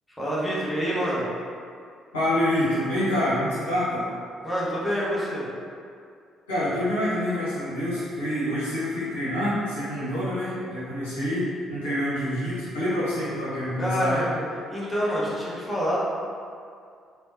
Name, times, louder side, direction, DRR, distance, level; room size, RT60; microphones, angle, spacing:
voice 1, 0.2-1.2 4.4-5.5 13.8-14.4 14.7-16.0, equal, 5° left, -8 dB, 0.9 m, -27 dB
voice 2, 2.1-4.1 6.5-14.2, left 1 dB, 75° left, -11 dB, 0.8 m, -26 dB
3.4 x 2.1 x 2.6 m, 2.3 s
figure-of-eight pair, 45°, 0 cm